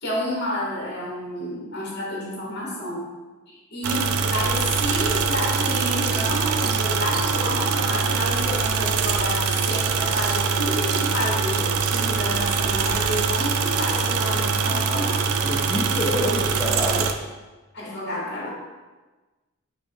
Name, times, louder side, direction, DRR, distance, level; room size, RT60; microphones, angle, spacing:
voice 1, 0.0-3.1 3.5-15.2 15.9-16.3 17.7-18.5, left 1 dB, 50° left, -4 dB, 1.2 m, -29 dB
sound 1, 3.8-17.1, right 5 dB, 75° right, 0.4 m, -23 dB
voice 2, 15.4-17.1, equal, 10° left, -5 dB, 0.4 m, -27 dB
5.3 x 2.2 x 4.6 m, 1.2 s
head